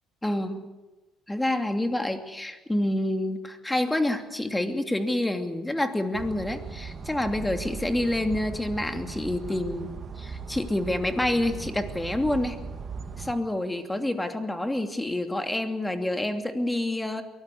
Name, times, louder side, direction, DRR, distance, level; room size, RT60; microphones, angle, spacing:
voice 1, 0.2-0.6 1.3-12.6 13.2-17.2, left 1 dB, 10° left, 6 dB, 2.8 m, -28 dB
sound 1, 6.1-13.3, right 5 dB, 45° right, 2.3 m, -38 dB
23.0 x 17.5 x 8.4 m, 1.1 s
hypercardioid pair, 55°, 0 cm